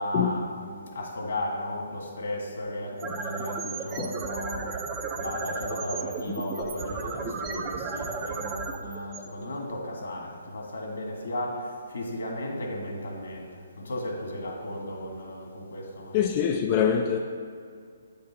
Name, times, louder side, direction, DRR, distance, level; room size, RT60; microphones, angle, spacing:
voice 1, 0.0-16.3, left 1 dB, 75° left, 2.0 m, -35 dB
sound 1, 2.8-9.9, right 4 dB, 20° right, 0.6 m, -34 dB
voice 2, 16.1-17.2, left 8 dB, 30° left, 0.4 m, -24 dB
8.7 x 5.4 x 4.2 m
hypercardioid pair, 145°, 0 cm